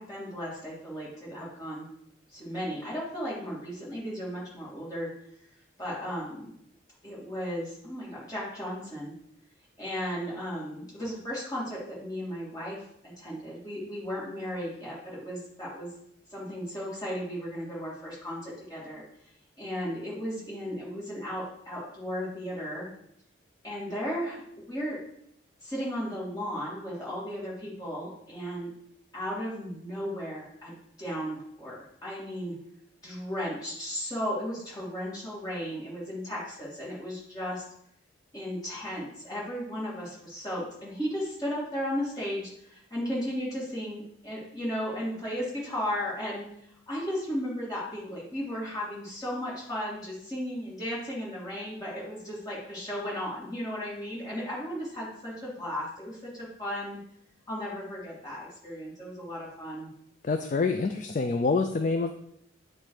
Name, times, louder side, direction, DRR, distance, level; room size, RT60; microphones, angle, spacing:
voice 1, 0.0-1.8 2.3-5.1 5.8-6.5 7.0-9.1 9.8-12.8 13.2-16.0 16.3-19.0 19.6-22.9 23.6-24.4 24.7-25.0 25.6-28.7 29.1-32.5 33.0-37.6 38.3-46.5 46.9-57.0 57.5-59.9, equal, 20° left, -7 dB, 2.7 m, -35 dB
voice 2, 60.2-62.1, left 4 dB, 40° left, 7 dB, 0.3 m, -26 dB
9.0 x 3.2 x 5.0 m, 0.74 s
head